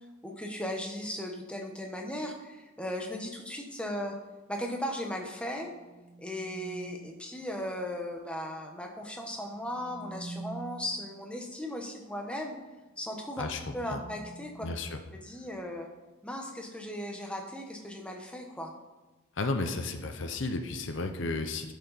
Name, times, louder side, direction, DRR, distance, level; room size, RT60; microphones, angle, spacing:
voice 1, 0.2-4.1 4.5-5.7 6.2-12.5 13.0-13.4 13.7-14.7 15.1-15.9 16.2-18.7, left 1 dB, 5° left, 2 dB, 1.0 m, -37 dB
sound 1, 1.9-2.3 5.4-7.3 9.4-11.1 13.1-15.5, right 3 dB, 20° right, 0.4 m, -47 dB
voice 2, 13.4-14.0 14.6-15.0 19.4-21.7, left 3 dB, 60° left, 7 dB, 0.7 m, -33 dB
11.5 x 7.1 x 4.1 m, 1.1 s
head